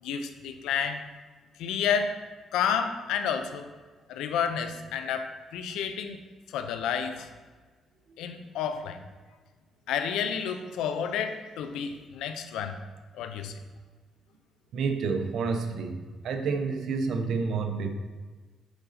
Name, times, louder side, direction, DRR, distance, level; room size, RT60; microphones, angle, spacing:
voice 1, 0.0-1.0 1.6-2.2 2.5-3.7 4.1-6.2 6.5-7.3 8.2-9.0 9.9-12.8 13.1-13.6, left 7 dB, 90° left, 8 dB, 0.6 m, -30 dB
voice 2, 14.7-16.0 16.2-17.9, right 4 dB, 70° right, 6 dB, 0.8 m, -29 dB
7.9 x 4.1 x 4.1 m, 1.4 s
cardioid pair, 90°, 0 cm